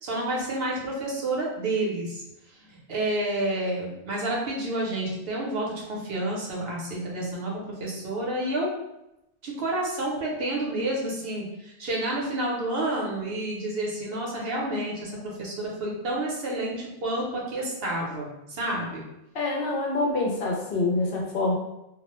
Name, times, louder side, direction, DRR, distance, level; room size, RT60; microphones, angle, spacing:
voice 1, 0.0-2.2 2.6-8.7 9.4-19.0, right 1 dB, 65° right, -3 dB, 0.8 m, -29 dB
voice 2, 19.3-21.5, left 2 dB, 65° left, -2 dB, 0.7 m, -26 dB
2.3 x 2.1 x 2.9 m, 0.89 s
omnidirectional pair, 1.1 m